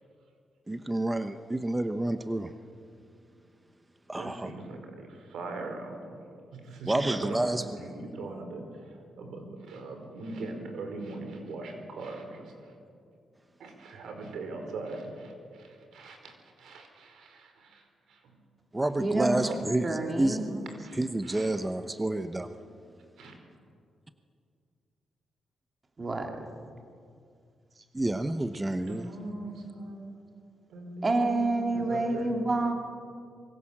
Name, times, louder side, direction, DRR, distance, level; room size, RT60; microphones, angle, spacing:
voice 1, 0.7-2.5 4.1-4.5 6.9-7.6 18.7-20.6 21.0-22.5 27.9-29.1, right 1 dB, 15° right, 9 dB, 1.0 m, -29 dB
voice 2, 4.2-6.2 6.5-12.7 13.6-18.4 18.8-19.6 20.8-21.5 23.2-23.4 28.9-30.0 30.7-32.4, right 2 dB, 85° right, 5 dB, 5.0 m, -41 dB
voice 3, 19.0-19.4 19.8-20.4 26.0-26.3 31.0-32.7, right 2 dB, 30° right, 3 dB, 2.8 m, -28 dB
26.0 x 23.0 x 7.4 m, 2.3 s
cardioid pair, 95°, 0 cm